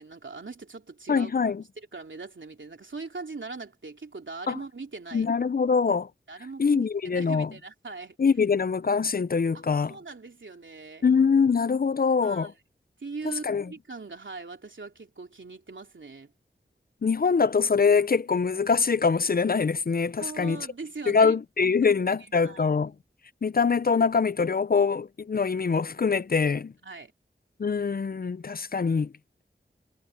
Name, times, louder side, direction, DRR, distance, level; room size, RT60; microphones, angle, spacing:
voice 1, 0.0-1.3 1.8-5.3 6.3-8.2 9.5-9.6 9.9-11.1 12.2-12.5 13.0-16.3 20.2-21.3 22.4-22.7 26.8-27.1, right 4 dB, 75° right, 3.1 m, -40 dB
voice 2, 1.1-1.6 4.5-4.6 5.1-6.1 6.6-7.5 8.2-10.0 11.0-12.5 13.4-13.6 17.0-20.6 21.1-22.9 23.4-26.7 27.6-29.1, left 5 dB, 50° left, 0.5 m, -24 dB
wide cardioid pair, 40°, 20 cm